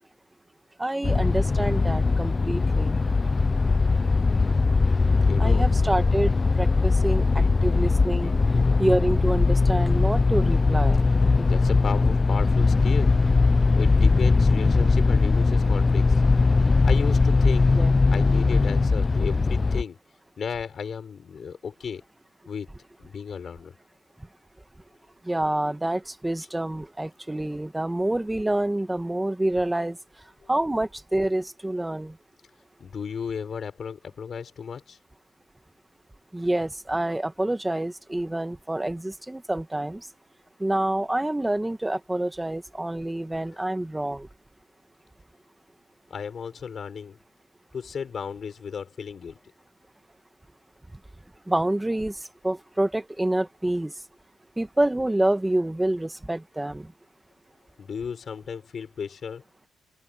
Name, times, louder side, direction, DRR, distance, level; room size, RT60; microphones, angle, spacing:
voice 1, 0.8-3.0 5.4-8.3 8.8-11.0 17.8-18.0 25.3-30.0 30.5-32.1 36.3-40.0 40.6-44.3 51.5-52.2 52.4-53.9 54.6-56.9, right 1 dB, 10° right, 1.6 m, -27 dB
sound 1, 1.0-19.8, left 3 dB, 25° left, 0.4 m, -20 dB
voice 2, 5.3-5.7 7.3-7.6 8.2-8.4 11.4-13.2 13.8-16.2 16.8-17.7 18.1-20.0 20.4-22.0 22.5-22.7 23.0-23.7 32.8-35.0 46.1-47.2 47.7-49.4 57.8-59.4, left 6 dB, 50° left, 6.4 m, -34 dB
open air
cardioid pair, 90°, 0 cm